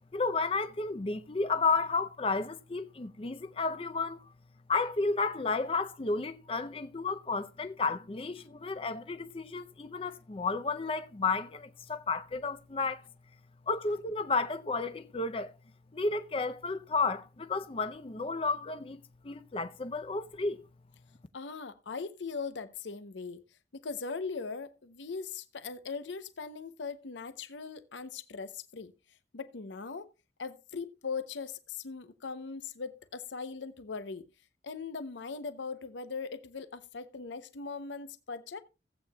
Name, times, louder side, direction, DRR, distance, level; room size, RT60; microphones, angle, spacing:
voice 1, 0.1-4.3 4.7-13.0 13.7-15.5 15.9-20.6, left 4 dB, 30° left, 0.5 m, -32 dB
voice 2, 21.3-23.4 23.7-28.9 29.3-30.1 30.4-34.3 34.6-38.6, left 4 dB, 85° left, 0.7 m, -40 dB
16.5 x 8.4 x 2.2 m
head